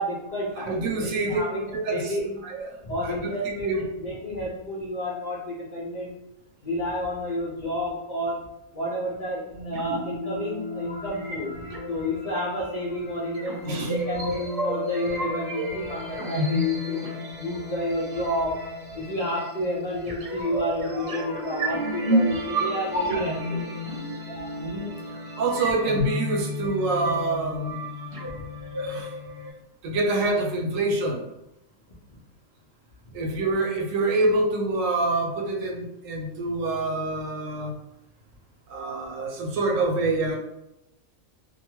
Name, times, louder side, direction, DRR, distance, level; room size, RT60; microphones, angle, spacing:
voice 1, 0.0-1.6 1.9-2.4 2.8-3.7 4.0-6.1 6.6-8.4 8.7-11.5 11.9-17.1 17.4-18.6 18.9-23.6, left 1 dB, 75° left, -6 dB, 0.4 m, -30 dB
voice 2, 0.6-1.4 1.7-2.2 2.4-2.8 3.0-3.8 13.7-14.0 24.5-24.9 25.4-27.8 28.8-29.1 29.8-31.3 33.1-37.8 38.7-40.4, right 2 dB, 75° right, 1 dB, 1.0 m, -26 dB
sound 1, 9.5-29.5, equal, 50° right, 0.8 m, -31 dB
2.5 x 2.2 x 2.9 m, 0.92 s
omnidirectional pair, 1.4 m